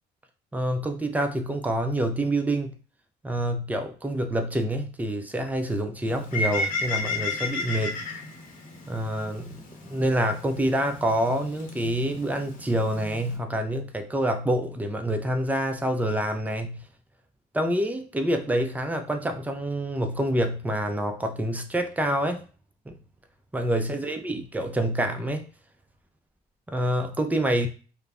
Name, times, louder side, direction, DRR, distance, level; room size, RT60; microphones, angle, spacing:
voice 1, 0.5-2.7 3.2-8.0 8.9-9.6 9.9-16.8 17.5-22.4 22.9-23.0 23.5-25.5 26.7-27.7, right 1 dB, 10° right, 5 dB, 0.4 m, -27 dB
Bird, 6.1-13.4, left 3 dB, 50° left, 0.8 m, -34 dB
2.3 x 2.0 x 3.5 m, 0.37 s
cardioid pair, 110°, 17 cm